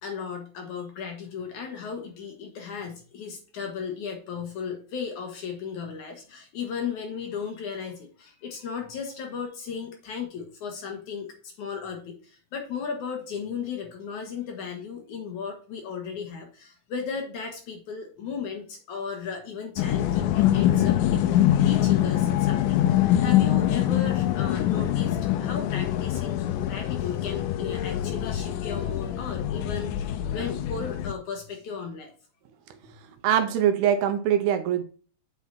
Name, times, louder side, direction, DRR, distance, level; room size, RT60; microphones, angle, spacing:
voice 1, 0.0-32.1, left 6 dB, 65° left, 2 dB, 2.3 m, -36 dB
sound 1, 19.8-31.1, left 12 dB, 85° left, 1.8 m, -24 dB
voice 2, 32.9-34.8, right 9 dB, 80° right, 8 dB, 2.6 m, -23 dB
8.3 x 4.8 x 4.1 m, 0.39 s
omnidirectional pair, 4.5 m